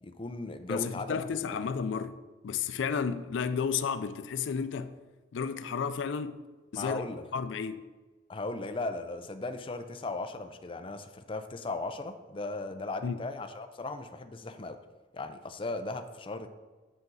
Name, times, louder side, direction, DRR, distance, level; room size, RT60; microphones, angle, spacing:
voice 1, 0.0-1.6 6.7-7.2 8.3-14.8 15.1-16.5, left 2 dB, 30° left, 0.5 m, -37 dB
voice 2, 0.7-2.2 2.4-4.9 5.3-6.4 6.7-7.0 7.3-7.8 13.0-13.2, left 6 dB, 85° left, 0.4 m, -32 dB
8.1 x 5.9 x 3.9 m
head